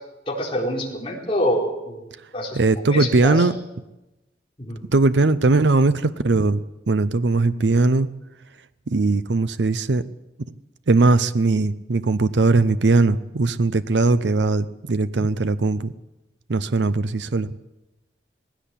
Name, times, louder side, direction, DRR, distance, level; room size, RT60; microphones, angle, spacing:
voice 1, 0.3-2.0 2.3-3.4 4.6-4.8, equal, 30° left, -2 dB, 4.4 m, -26 dB
voice 2, 2.5-3.5 4.9-8.1 8.9-10.0 10.9-15.9 16.5-17.5, right 3 dB, 90° right, 13 dB, 0.7 m, -19 dB
19.0 x 16.0 x 8.5 m, 0.99 s
head